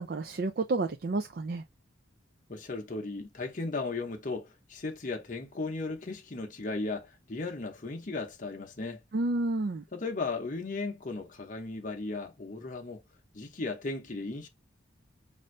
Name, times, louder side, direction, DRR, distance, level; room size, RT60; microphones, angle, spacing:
voice 1, 0.0-1.6 9.1-9.8, right 2 dB, 50° right, 0.4 m, -30 dB
voice 2, 2.5-9.0 9.9-13.0 13.3-14.5, left 3 dB, 40° left, 0.8 m, -36 dB
5.3 x 2.6 x 3.2 m
head